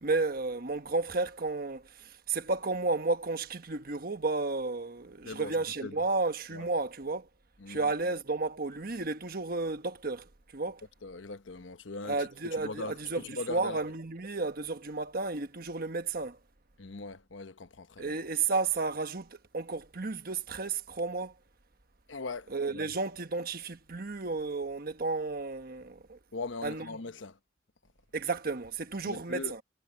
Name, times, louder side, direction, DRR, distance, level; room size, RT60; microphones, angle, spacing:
voice 1, 0.0-7.3 7.7-10.8 12.0-13.2 13.5-16.4 18.0-21.3 22.5-26.2 26.6-26.9 28.1-29.6, right 3 dB, 50° right, 1.3 m, -32 dB
voice 2, 5.2-6.0 6.5-6.7 7.6-7.9 11.0-13.8 16.8-18.2 22.1-22.9 26.3-27.4 29.0-29.5, left 3 dB, 80° left, 1.0 m, -40 dB
head